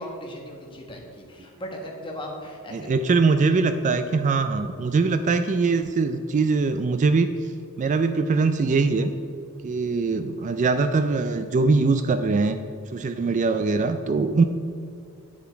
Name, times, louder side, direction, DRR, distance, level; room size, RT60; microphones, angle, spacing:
voice 1, 0.0-2.9, equal, 25° left, 0 dB, 1.4 m, -37 dB
voice 2, 2.7-7.5 7.8-9.1 9.6-12.6 12.9-14.4, right 4 dB, 35° right, 9 dB, 0.3 m, -22 dB
9.6 x 7.0 x 4.6 m, 2.4 s
head